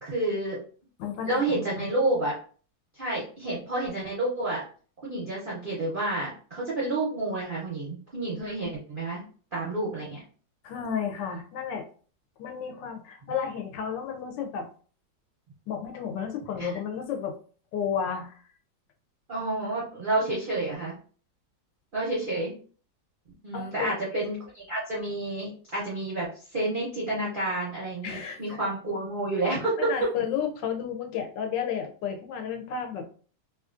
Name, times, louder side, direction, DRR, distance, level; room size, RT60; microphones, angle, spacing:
voice 1, 0.0-0.6 1.2-2.4 2.9-4.6 5.0-9.2 9.5-10.2 16.6-16.7 19.3-20.9 21.9-22.5 23.4-29.9, right 2 dB, 60° right, -6 dB, 0.5 m, -29 dB
voice 2, 1.0-1.9 10.6-11.9 12.4-14.7 15.7-17.4 17.7-18.4 23.5-24.2 28.0-28.6 29.8-33.1, left 7 dB, 80° left, 4 dB, 1.3 m, -32 dB
3.0 x 2.4 x 2.4 m, 0.41 s
omnidirectional pair, 2.0 m